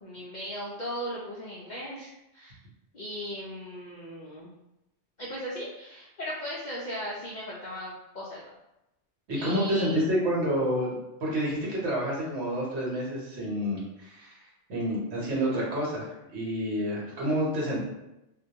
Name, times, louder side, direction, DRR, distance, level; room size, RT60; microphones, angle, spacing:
voice 1, 0.0-2.6 2.9-4.5 5.2-8.4 9.3-10.1, equal, 60° left, -7 dB, 0.4 m, -37 dB
voice 2, 9.3-14.4 14.7-17.8, equal, 65° right, -4 dB, 1.1 m, -29 dB
2.1 x 2.1 x 2.7 m, 0.91 s
omnidirectional pair, 1.2 m